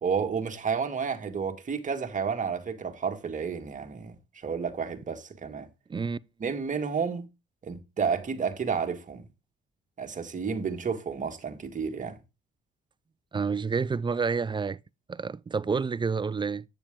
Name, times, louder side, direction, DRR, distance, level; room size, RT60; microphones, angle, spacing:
voice 1, 0.0-5.7 6.4-7.3 7.6-9.2 10.0-12.2, right 6 dB, 40° right, 1.7 m, -31 dB
voice 2, 13.3-14.8 15.1-16.6, right 5 dB, 25° right, 0.5 m, -29 dB
9.0 x 6.9 x 3.6 m
cardioid pair, 90°, 20 cm